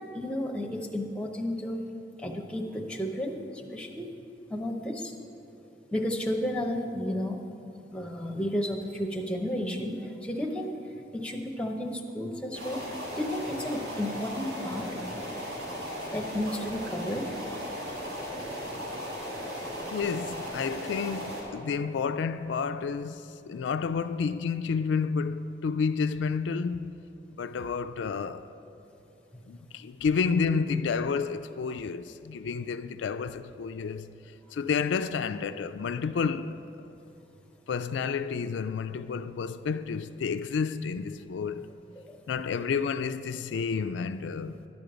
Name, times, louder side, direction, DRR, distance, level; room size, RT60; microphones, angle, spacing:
voice 1, 0.0-1.8 2.2-4.1 4.5-5.1 5.9-7.4 7.9-12.8 13.1-15.2 16.1-17.6 19.5-19.9 29.3-29.6 42.0-42.2, equal, 5° left, 0.7 m, -33 dB
sound 1, 12.5-21.4, equal, 60° right, 2.4 m, -37 dB
voice 2, 19.9-27.0 27.4-28.5 29.5-34.1 34.5-36.9 37.7-41.7 42.3-44.7, left 5 dB, 90° left, 0.3 m, -30 dB
11.0 x 5.1 x 7.8 m
head